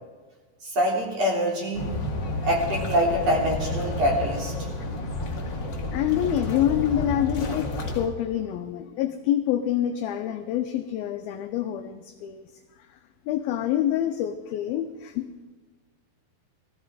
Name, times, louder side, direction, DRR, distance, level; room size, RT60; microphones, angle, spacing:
voice 1, 0.6-1.9 2.4-4.5, equal, 40° right, 0 dB, 3.9 m, -24 dB
sound 1, 1.7-8.1, left 2 dB, 45° left, 1.6 m, -30 dB
voice 2, 5.9-12.4 13.3-15.3, left 11 dB, 80° left, 6 dB, 2.2 m, -26 dB
18.5 x 14.5 x 4.9 m, 1.3 s
omnidirectional pair, 5.1 m